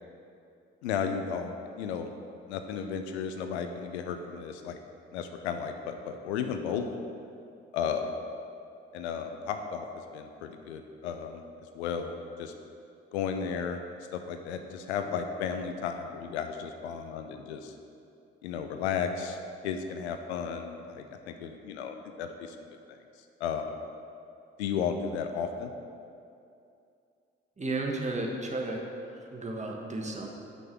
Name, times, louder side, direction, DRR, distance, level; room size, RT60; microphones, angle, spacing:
voice 1, 0.8-2.1 2.5-4.8 5.1-7.0 7.7-8.2 8.9-9.9 10.1-11.4 11.7-12.5 13.1-13.8 14.1-17.7 18.4-19.4 19.6-22.6 22.9-23.0 23.4-23.7 24.6-25.7, left 7 dB, 80° left, 6 dB, 0.5 m, -34 dB
voice 2, 27.6-28.8 29.1-30.3, right 2 dB, 20° right, 0 dB, 1.2 m, -33 dB
6.2 x 5.3 x 5.8 m, 2.5 s
figure-of-eight pair, 40°, 33 cm